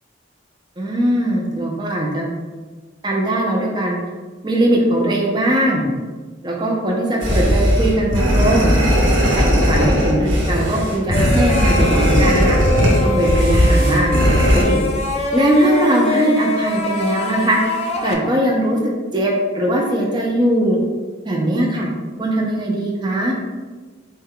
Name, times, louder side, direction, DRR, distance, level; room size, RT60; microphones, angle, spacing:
voice 1, 0.8-2.2 3.0-4.0 4.4-5.8 6.4-8.7 9.2-12.6 13.0-14.2 14.5-14.8 15.3-17.6 18.0-20.8 21.2-21.9 22.2-23.3, right 1 dB, 25° right, -1 dB, 0.5 m, -19 dB
sound 1, 7.2-14.6, equal, 80° right, 1.0 m, -17 dB
sound 2, 11.1-18.1, left 2 dB, 30° left, 0.3 m, -23 dB
4.4 x 2.2 x 3.6 m, 1.4 s
head